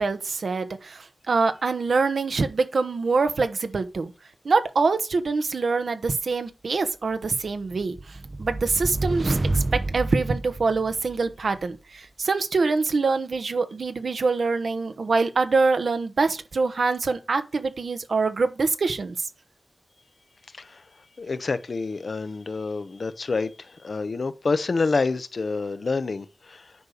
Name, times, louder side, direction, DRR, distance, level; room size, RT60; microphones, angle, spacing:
voice 1, 0.0-4.1 4.4-19.3, right 4 dB, 80° right, 1.1 m, -25 dB
sound 1, 7.5-11.3, right 2 dB, 40° right, 0.6 m, -29 dB
voice 2, 21.2-26.7, left 4 dB, 70° left, 0.9 m, -28 dB
9.5 x 4.9 x 6.5 m
cardioid pair, 45°, 0 cm